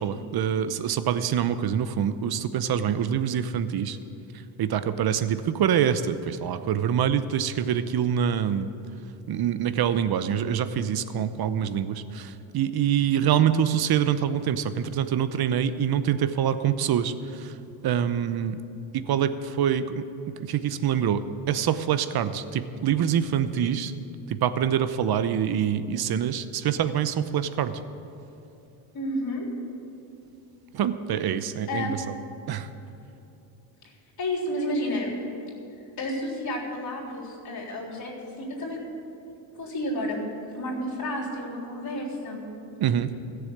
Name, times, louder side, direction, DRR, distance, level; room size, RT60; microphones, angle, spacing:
voice 1, 0.0-4.0 4.6-8.7 9.3-17.5 17.8-18.6 18.9-20.0 20.4-21.2 21.5-23.9 24.3-27.8 30.7-32.0 32.5-32.7 42.8-43.1, right 9 dB, 50° right, 12 dB, 0.8 m, -25 dB
voice 2, 28.9-29.5 31.7-32.1 33.8-33.9 34.2-35.1 36.0-38.8 39.5-40.2 40.5-42.5, left 1 dB, 50° left, -5 dB, 3.8 m, -31 dB
15.5 x 7.1 x 8.6 m, 2.9 s
cardioid pair, 105°, 48 cm